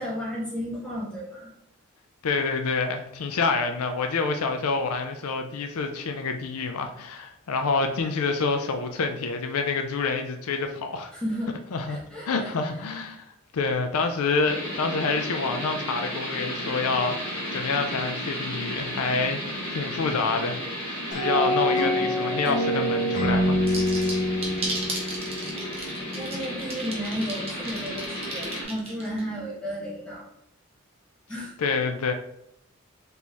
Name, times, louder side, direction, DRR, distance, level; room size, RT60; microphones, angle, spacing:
voice 1, 0.0-1.5 11.1-11.6 11.9-12.5 26.1-30.3 31.3-31.5, equal, 5° left, -7 dB, 1.5 m, -33 dB
voice 2, 2.2-11.1 11.7-12.0 12.3-13.2 13.5-20.6 21.1-23.6 31.6-32.1, left 4 dB, 85° left, 6 dB, 0.5 m, -27 dB
sound 1, 14.4-28.6, equal, 20° left, 1.1 m, -34 dB
sound 2, 21.1-26.3, equal, 35° left, 1.0 m, -26 dB
sound 3, 23.7-29.2, right 2 dB, 25° right, 1.0 m, -34 dB
4.2 x 3.4 x 2.9 m, 0.76 s
head